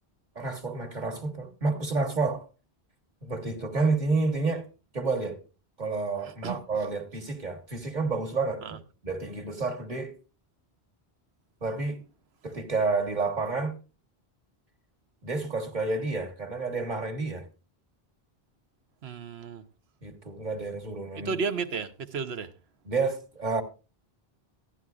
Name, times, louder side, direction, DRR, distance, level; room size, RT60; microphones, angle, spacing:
voice 1, 0.3-2.5 3.2-4.7 4.9-5.4 5.8-8.6 9.0-10.2 11.6-12.0 12.4-13.8 15.2-17.5 20.0-21.3 22.8-23.6, right 3 dB, 45° right, 1.5 m, -29 dB
voice 2, 6.2-6.6 8.6-8.8 19.0-19.6 21.2-22.5, right 5 dB, 85° right, 1.1 m, -33 dB
14.5 x 11.0 x 2.4 m
omnidirectional pair, 1.0 m